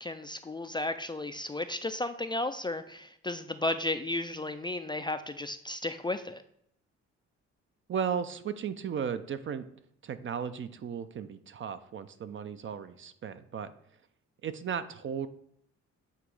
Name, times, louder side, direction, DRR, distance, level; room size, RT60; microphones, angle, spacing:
voice 1, 0.0-6.4, left 2 dB, 15° left, 9 dB, 0.3 m, -34 dB
voice 2, 7.9-9.6 10.0-13.7 14.4-15.3, right 7 dB, 40° right, 12 dB, 0.5 m, -35 dB
8.2 x 2.9 x 4.7 m, 0.71 s
cardioid pair, 90°, 30 cm